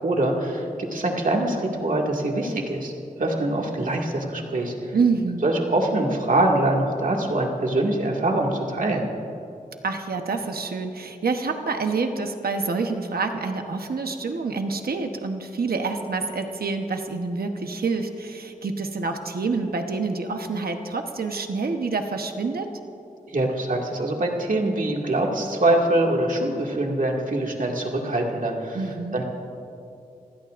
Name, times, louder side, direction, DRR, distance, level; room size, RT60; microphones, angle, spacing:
voice 1, 0.0-2.9 3.2-4.9 5.4-9.1 23.3-28.8 29.1-29.2, right 1 dB, 60° right, 0 dB, 2.1 m, -24 dB
voice 2, 4.9-5.4 9.8-22.7 28.7-29.2, right 4 dB, 90° right, 5 dB, 1.1 m, -27 dB
27.0 x 16.5 x 2.6 m, 2.7 s
wide cardioid pair, 90°, 15 cm